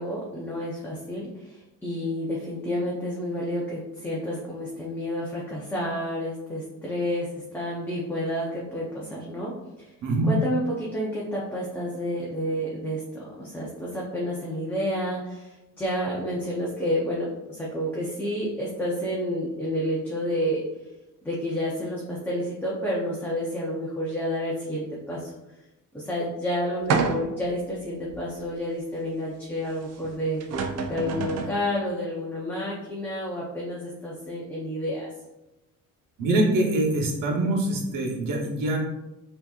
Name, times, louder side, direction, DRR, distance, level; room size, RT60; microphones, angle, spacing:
voice 1, 0.0-9.9 10.3-20.6 21.2-25.3 25.9-30.4 30.9-35.1, equal, 5° left, -6 dB, 0.5 m, -30 dB
voice 2, 10.0-10.3 36.2-38.8, right 2 dB, 75° right, 0 dB, 1.1 m, -24 dB
sound 1, 26.9-27.5 28.1-28.2 30.0-30.1 30.4-31.6, right 4 dB, 50° right, 0.5 m, -27 dB
5.8 x 2.8 x 2.3 m, 0.98 s
cardioid pair, 155°, 33 cm